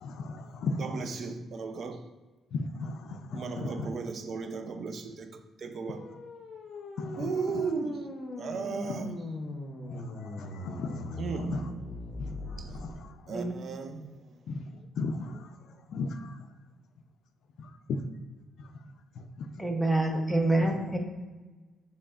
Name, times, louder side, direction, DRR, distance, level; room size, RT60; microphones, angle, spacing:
voice 1, 0.0-1.0 2.5-3.9 7.0-7.3 9.9-11.2 11.5-11.6 12.2-13.1 14.5-14.6 15.0-15.5 15.9-16.4 17.6-18.0 19.2-19.3 19.6-19.8, left 3 dB, 75° left, 0.4 m, -36 dB
voice 2, 0.8-2.1 3.3-6.1 7.2-9.2 11.2-11.9 12.6-12.7 13.3-14.4, right 5 dB, 55° right, 0.5 m, -36 dB
sound 1, 5.8-12.9, left 1 dB, 55° left, 0.8 m, -40 dB
voice 3, 19.6-21.0, right 2 dB, 5° right, 0.8 m, -26 dB
6.5 x 3.2 x 2.4 m
cardioid pair, 90°, 0 cm